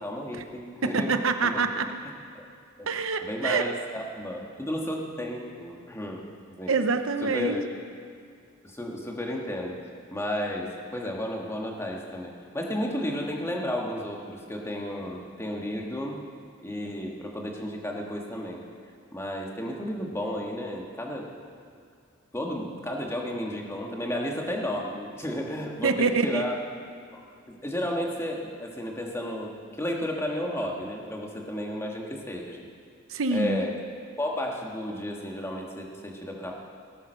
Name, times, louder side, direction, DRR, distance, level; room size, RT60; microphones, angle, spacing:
voice 1, 0.0-1.1 1.4-1.6 2.3-2.4 3.2-6.2 6.6-6.8 7.2-7.6 8.6-9.8 10.1-16.2 16.6-18.6 19.1-21.3 22.3-26.5 27.1-27.2 27.5-32.6 33.3-33.7 34.2-36.5, left 1 dB, 15° left, 0 dB, 1.6 m, -32 dB
voice 2, 0.8-1.9 2.9-3.6 6.7-7.6 25.8-26.5 33.1-33.6, right 4 dB, 75° right, 8 dB, 0.9 m, -26 dB
18.0 x 9.2 x 6.6 m, 2.3 s
head